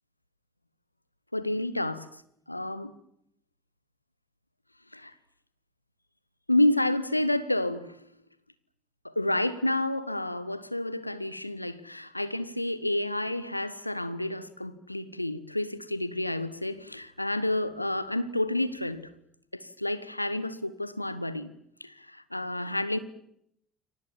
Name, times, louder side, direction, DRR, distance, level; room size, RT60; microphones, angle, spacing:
voice 1, 1.3-2.2 2.5-2.9 4.9-5.1 6.5-8.0 9.0-19.1 19.5-21.5 21.8-23.0, left 1 dB, 90° left, 1.0 m, -29 dB
29.0 x 23.5 x 7.4 m
figure-of-eight pair, 55°, 0 cm